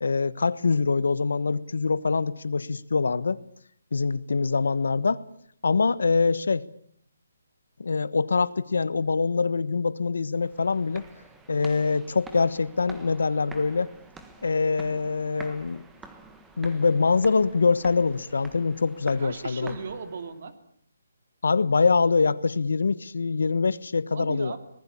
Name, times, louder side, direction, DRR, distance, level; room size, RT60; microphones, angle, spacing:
voice 1, 0.0-3.4 3.9-5.2 5.6-6.7 7.8-11.0 11.5-13.9 14.4-15.8 16.6-19.7 21.4-24.5, left 4 dB, 75° left, 16 dB, 1.3 m, -24 dB
sound 1, 10.4-20.4, right 3 dB, 5° right, 1.4 m, -48 dB
voice 2, 19.2-20.5 24.1-24.6, right 5 dB, 45° right, 9 dB, 2.9 m, -36 dB
26.0 x 19.5 x 8.7 m, 0.64 s
hypercardioid pair, 170°, 0 cm